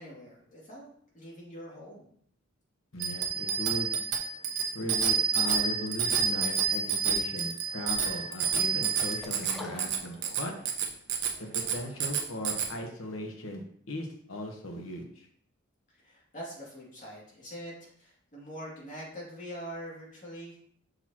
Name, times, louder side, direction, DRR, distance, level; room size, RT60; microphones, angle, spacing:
voice 1, 0.0-2.1 15.9-20.6, equal, 40° left, -5 dB, 2.5 m, -44 dB
voice 2, 2.9-4.0 4.7-10.5 11.4-15.3, left 1 dB, 75° left, 3 dB, 1.2 m, -38 dB
Bicycle bell, 3.0-12.7, right 6 dB, 60° right, 1.0 m, -29 dB
sound 1, 9.1-10.6 11.0-11.1, left 1 dB, ahead, 0.8 m, -44 dB
6.5 x 6.2 x 2.9 m, 0.65 s
head